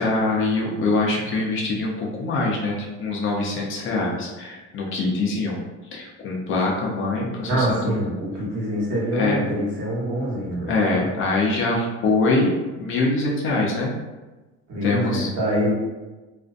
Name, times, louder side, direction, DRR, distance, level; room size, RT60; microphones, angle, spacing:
voice 1, 0.0-5.6 5.9-8.0 9.1-9.4 10.7-12.5 12.8-13.9 14.8-15.3, left 3 dB, 45° left, -2 dB, 0.5 m, -23 dB
voice 2, 7.5-10.8 14.7-15.7, equal, 50° right, -6 dB, 1.0 m, -25 dB
2.4 x 2.1 x 2.5 m, 1.2 s
cardioid pair, 140°, 29 cm